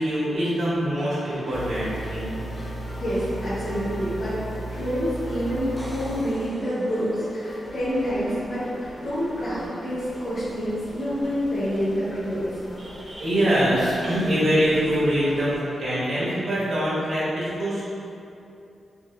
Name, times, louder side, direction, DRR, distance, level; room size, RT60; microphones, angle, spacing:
voice 1, 0.0-2.4 12.8-17.8, equal, 80° right, -9 dB, 1.5 m, -24 dB
sound 1, 1.0-17.2, left 1 dB, 30° left, 1.0 m, -45 dB
sound 2, 1.5-15.6, right 1 dB, 65° left, 0.5 m, -38 dB
voice 2, 3.0-4.4 4.7-12.6, equal, 50° left, -15 dB, 1.5 m, -27 dB
sound 3, 5.6-7.5 11.2-11.3, equal, ahead, 0.5 m, -43 dB
6.0 x 2.2 x 2.2 m, 2.6 s
cardioid pair, 85°, 0 cm